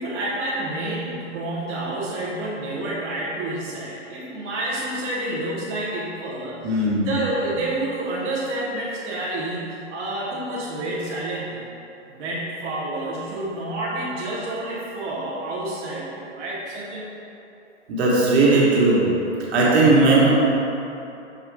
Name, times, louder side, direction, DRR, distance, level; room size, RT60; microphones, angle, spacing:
voice 1, 0.0-11.6 12.1-17.1, right 1 dB, 20° right, -8 dB, 0.5 m, -29 dB
voice 2, 6.6-7.1 17.9-19.1 19.5-20.3, right 2 dB, 60° right, -5 dB, 1.2 m, -17 dB
6.0 x 2.3 x 3.3 m, 2.8 s
hypercardioid pair, 140°, 36 cm